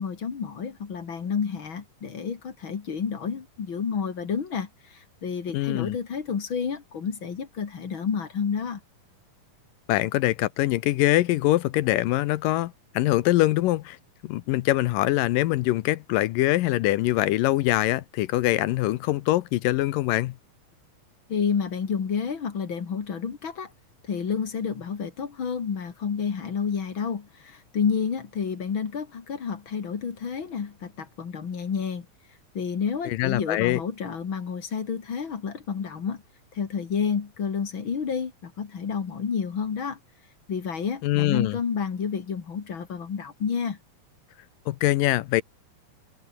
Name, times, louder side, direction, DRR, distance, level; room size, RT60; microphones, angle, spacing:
voice 1, 0.0-8.8 21.3-23.7 24.0-32.1 32.5-36.2 36.5-40.0 40.5-43.8, left 6 dB, 40° left, 2.4 m, -30 dB
voice 2, 5.5-6.0 9.9-14.0 14.2-20.4 33.1-33.8 41.0-41.6 44.7-45.4, left 16 dB, 75° left, 2.2 m, -23 dB
omnidirectional pair, 4.3 m